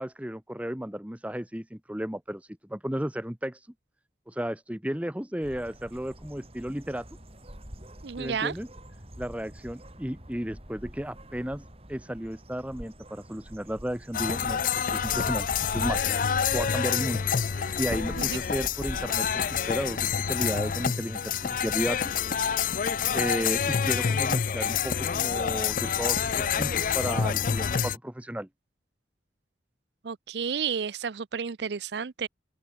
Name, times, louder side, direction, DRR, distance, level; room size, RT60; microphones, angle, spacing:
voice 1, 0.0-3.6 4.3-7.1 8.2-8.7 9.2-11.6 11.9-16.1 16.5-17.3 17.8-22.2 23.1-28.5, equal, 5° right, 1.0 m, -33 dB
sound 1, 5.4-19.1, equal, 35° right, 5.0 m, -44 dB
voice 2, 8.0-8.5 18.2-18.4 30.0-32.3, right 6 dB, 70° right, 0.6 m, -31 dB
sound 2, 14.1-28.0, left 7 dB, 45° left, 0.4 m, -27 dB
open air
head